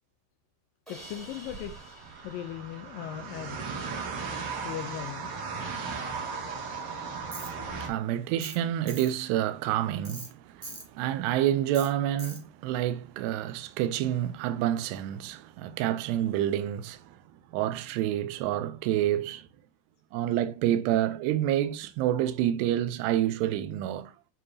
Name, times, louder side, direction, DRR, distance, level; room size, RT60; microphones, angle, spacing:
voice 1, 0.9-1.9 2.2-3.6 4.6-5.3, left 11 dB, 80° left, 2.0 m, -38 dB
Crash cymbal, 0.9-3.9, equal, ahead, 2.6 m, -51 dB
sound 1, 1.0-7.9, right 5 dB, 50° right, 2.7 m, -37 dB
Tools, 7.3-7.5 8.4-8.6 8.9-9.1 10.0-10.3 10.6-10.8 11.7-11.9 12.2-12.4, right 2 dB, 25° right, 1.0 m, -41 dB
voice 2, 7.8-17.1 17.5-19.5 20.1-24.1, right 12 dB, 85° right, 2.8 m, -28 dB
9.9 x 4.7 x 2.8 m
omnidirectional pair, 4.7 m